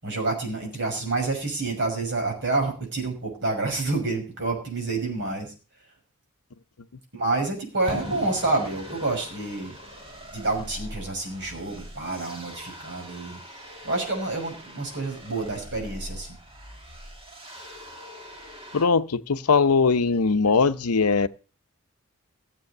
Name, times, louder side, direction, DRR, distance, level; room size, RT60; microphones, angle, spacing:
voice 1, 0.0-5.5 7.1-9.7 10.3-13.4 13.8-16.3, right 3 dB, 55° right, 5.9 m, -28 dB
sound 1, 7.8-18.9, equal, 25° right, 2.4 m, -43 dB
Fireworks, 7.9-11.7, left 1 dB, ahead, 6.5 m, -40 dB
voice 2, 18.7-21.3, left 4 dB, 85° left, 0.7 m, -20 dB
16.0 x 7.7 x 6.5 m
head